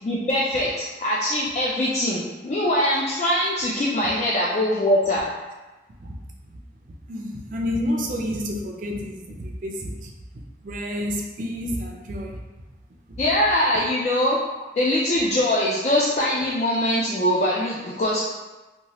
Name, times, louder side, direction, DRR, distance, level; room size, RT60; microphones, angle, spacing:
voice 1, 0.0-5.3 13.2-14.4 14.8-18.2, left 1 dB, 40° left, -6 dB, 0.3 m, -22 dB
voice 2, 7.1-10.1 10.6-12.4, left 1 dB, 50° right, 0 dB, 0.4 m, -29 dB
2.9 x 2.3 x 2.9 m, 1.1 s
head